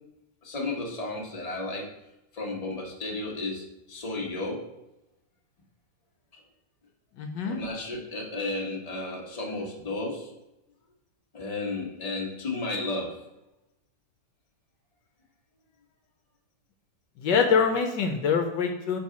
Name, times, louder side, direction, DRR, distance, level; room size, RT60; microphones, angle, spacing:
voice 1, 0.4-1.9 2.3-4.7 7.4-10.3 11.3-13.2, left 2 dB, 20° left, -2 dB, 1.4 m, -33 dB
voice 2, 7.2-7.6 17.2-19.0, left 6 dB, 75° left, 4 dB, 1.4 m, -24 dB
5.4 x 4.5 x 5.8 m, 0.92 s
omnidirectional pair, 2.0 m